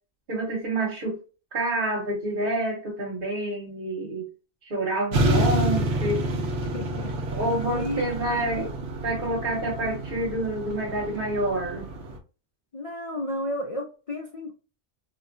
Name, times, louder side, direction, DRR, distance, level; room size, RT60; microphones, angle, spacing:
voice 1, 0.3-1.2 1.5-4.3 4.6-6.3 7.3-8.7 9.0-11.9, right 1 dB, 50° right, 1.0 m, -28 dB
voice 2, 5.1-5.8 6.3-6.4 6.7-7.4 7.7-8.5 12.7-14.5, left 2 dB, 60° left, 0.3 m, -33 dB
sound 1, 5.1-12.2, right 1 dB, 75° right, 1.0 m, -28 dB
4.0 x 2.1 x 2.4 m
omnidirectional pair, 1.2 m